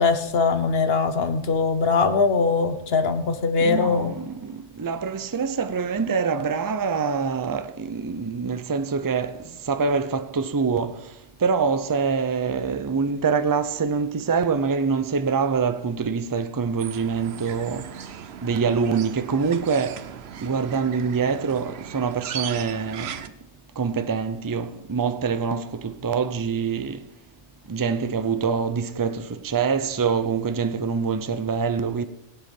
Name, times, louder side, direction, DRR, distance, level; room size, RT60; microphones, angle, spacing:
voice 1, 0.0-4.1, left 4 dB, 55° left, 1.2 m, -21 dB
voice 2, 3.6-9.4 9.7-11.0 11.4-17.9 18.4-20.0 20.4-23.1 23.8-27.0 27.7-32.0, right 5 dB, 25° right, 0.5 m, -25 dB
sound 1, 16.8-23.3, right 9 dB, 65° right, 0.9 m, -38 dB
17.5 x 8.0 x 5.3 m
omnidirectional pair, 1.2 m